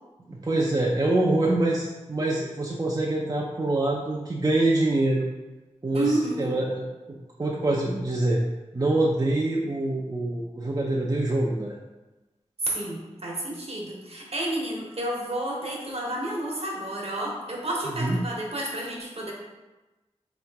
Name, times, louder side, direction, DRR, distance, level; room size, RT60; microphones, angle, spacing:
voice 1, 0.3-5.3 5.8-8.4 8.7-11.8 17.9-18.2, right 2 dB, 30° right, -3 dB, 0.5 m, -25 dB
voice 2, 5.9-6.5 12.6-19.3, right 1 dB, 55° right, -2 dB, 1.0 m, -30 dB
3.6 x 2.9 x 3.4 m, 1.1 s
cardioid pair, 45°, 12 cm